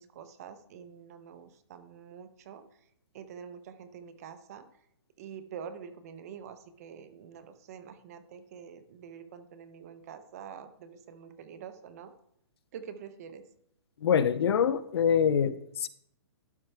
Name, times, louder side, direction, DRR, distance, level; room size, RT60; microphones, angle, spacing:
voice 1, 0.0-2.6 3.1-4.6 5.2-12.1 12.7-13.4, right 7 dB, 35° right, 11 dB, 0.6 m, -46 dB
voice 2, 14.0-15.9, left 7 dB, 65° left, 15 dB, 0.6 m, -25 dB
12.0 x 4.5 x 3.3 m, 0.73 s
hypercardioid pair, 165°, 14 cm